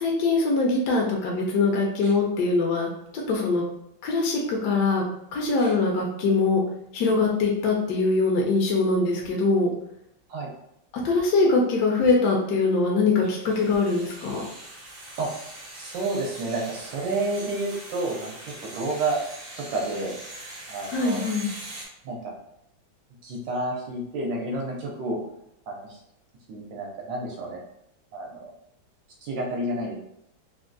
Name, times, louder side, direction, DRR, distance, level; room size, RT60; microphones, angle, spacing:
voice 1, 0.0-2.9 3.3-3.6 4.0-5.0 5.3-6.6 6.9-9.7 11.0-14.4 20.9-21.5, left 3 dB, 70° left, -1 dB, 1.0 m, -22 dB
sound 1, 13.2-21.9, right 1 dB, 50° right, 0.7 m, -42 dB
voice 2, 15.7-19.2 19.6-20.2 20.7-21.2 22.0-22.3 23.2-25.2 25.7-26.0 26.5-27.6 28.1-28.5 29.2-29.9, right 2 dB, 75° right, -1 dB, 1.2 m, -30 dB
3.4 x 2.2 x 2.5 m, 0.78 s
omnidirectional pair, 2.1 m